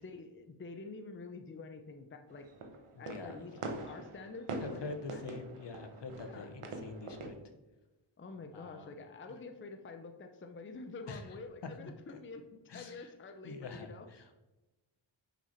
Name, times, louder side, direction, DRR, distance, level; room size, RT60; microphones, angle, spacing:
voice 1, 0.0-2.5 3.0-5.2 6.2-6.5 8.2-14.1, left 3 dB, 25° left, 5 dB, 0.6 m, -47 dB
sound 1, 2.3-7.3, right 3 dB, 85° right, 1.1 m, -44 dB
voice 2, 2.9-3.6 4.6-7.3 8.5-8.9 11.1-11.4 11.8-12.2 12.7-13.1 13.4-14.3, left 3 dB, 55° left, 6 dB, 1.0 m, -45 dB
5.6 x 5.6 x 4.4 m, 1.1 s
wide cardioid pair, 80°, 50 cm